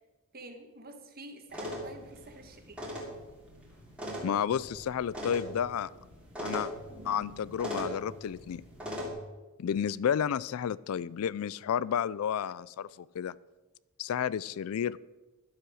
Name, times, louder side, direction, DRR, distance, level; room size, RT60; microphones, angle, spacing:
voice 1, 0.3-2.8, right 2 dB, 45° right, 6 dB, 1.5 m, -48 dB
sound 1, 1.5-9.1, equal, 5° right, 2.7 m, -40 dB
voice 2, 4.2-5.9 6.4-6.7 7.0-8.6 9.6-13.3 14.0-15.0, left 8 dB, 70° left, 20 dB, 0.3 m, -31 dB
11.5 x 7.9 x 6.3 m, 1.2 s
head